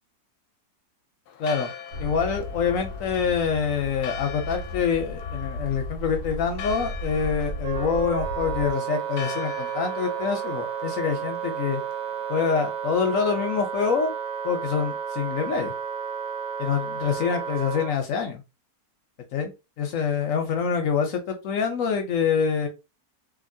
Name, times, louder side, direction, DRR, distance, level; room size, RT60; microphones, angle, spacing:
Church bell, 1.3-12.8, left 9 dB, 90° left, 1.1 m, -42 dB
voice 1, 1.4-1.7 2.0-11.8 12.3-14.1 14.4-15.7 16.6-18.4 19.3-19.5 19.8-22.7, left 6 dB, 65° left, 5 dB, 0.9 m, -26 dB
sound 1, 1.9-8.7, left 1 dB, 85° right, 1.3 m, -35 dB
Wind instrument woodwind instrument, 7.6-17.9, right 8 dB, 50° right, 0.6 m, -32 dB
2.9 x 2.6 x 2.6 m, 0.27 s
omnidirectional pair, 1.6 m